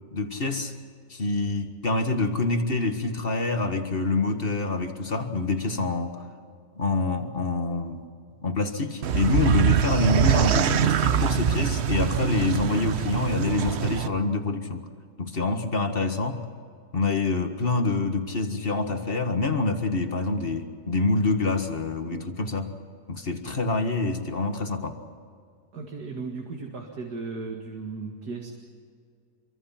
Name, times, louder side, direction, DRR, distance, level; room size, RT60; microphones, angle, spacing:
voice 1, 0.1-0.7 1.1-6.3 6.8-8.0 8.4-14.9 15.2-16.4 16.9-22.8 23.1-25.0, left 3 dB, 35° left, 6 dB, 1.8 m, -26 dB
sound 1, 9.0-14.1, right 8 dB, 55° right, 0.9 m, -23 dB
voice 2, 25.7-28.5, right 4 dB, 80° right, 1 dB, 2.6 m, -36 dB
27.0 x 24.0 x 5.8 m, 2.2 s
omnidirectional pair, 1.7 m